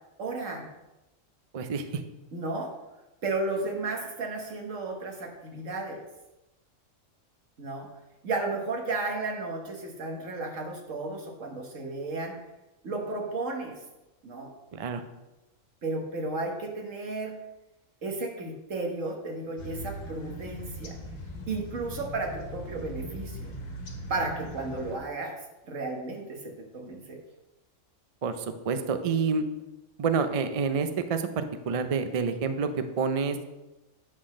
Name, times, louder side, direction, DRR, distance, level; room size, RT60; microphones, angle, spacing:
voice 1, 0.2-0.7 2.3-2.7 3.2-6.0 7.6-7.9 8.2-12.4 12.8-13.8 14.2-14.5 15.8-17.4 18.0-21.0 21.5-23.5 24.1-25.4 25.7-27.2, right 3 dB, 75° right, 1 dB, 1.7 m, -33 dB
voice 2, 1.5-2.0 14.7-15.0 28.2-29.4 30.0-32.7 33.0-33.4, right 5 dB, 55° right, 9 dB, 0.4 m, -28 dB
sound 1, 19.6-25.0, equal, 90° left, 1.6 m, -40 dB
8.6 x 3.9 x 6.2 m, 1.0 s
omnidirectional pair, 1.4 m